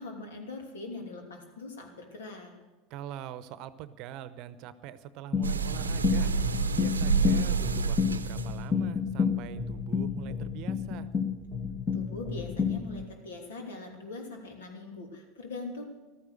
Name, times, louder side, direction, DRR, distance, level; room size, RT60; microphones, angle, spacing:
voice 1, 0.0-2.5 11.9-15.8, left 3 dB, 75° left, 2 dB, 3.0 m, -41 dB
voice 2, 2.9-6.3 6.7-11.1, right 10 dB, 50° right, 15 dB, 0.8 m, -43 dB
sound 1, 5.3-13.0, left 6 dB, 35° left, 1.7 m, -30 dB
sound 2, 5.4-8.6, right 5 dB, 85° right, 0.7 m, -29 dB
15.0 x 13.0 x 6.4 m, 1.1 s
hypercardioid pair, 85°, 0 cm